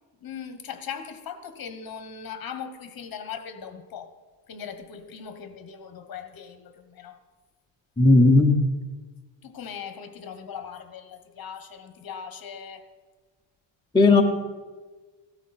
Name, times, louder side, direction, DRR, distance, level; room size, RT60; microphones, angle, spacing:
voice 1, 0.2-4.1 4.5-7.2 9.4-12.9, left 7 dB, 50° left, 8 dB, 1.2 m, -39 dB
voice 2, 8.0-8.6 13.9-14.2, left 2 dB, 10° left, 0 dB, 0.7 m, -15 dB
16.0 x 13.0 x 4.3 m, 1.3 s
cardioid pair, 170°, 46 cm